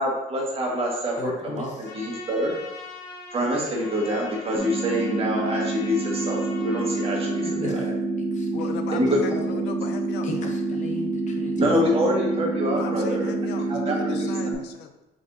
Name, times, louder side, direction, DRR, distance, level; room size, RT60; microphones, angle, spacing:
voice 1, 0.0-2.5 3.3-7.9 8.9-9.4 11.6-14.3, equal, 35° right, -3 dB, 1.4 m, -26 dB
voice 2, 1.2-1.9 7.4-7.7 8.3-8.9 9.2-9.3 10.2-11.7, left 3 dB, 45° left, 2 dB, 0.9 m, -36 dB
Trumpet, 1.8-7.6, left 3 dB, 65° left, 1.1 m, -41 dB
sound 1, 4.5-14.5, right 2 dB, 5° left, 0.7 m, -27 dB
voice 3, 8.5-10.5 11.8-12.1 12.7-14.9, left 7 dB, 85° left, 7 dB, 0.5 m, -37 dB
5.1 x 3.3 x 2.7 m, 0.99 s
cardioid pair, 110°, 17 cm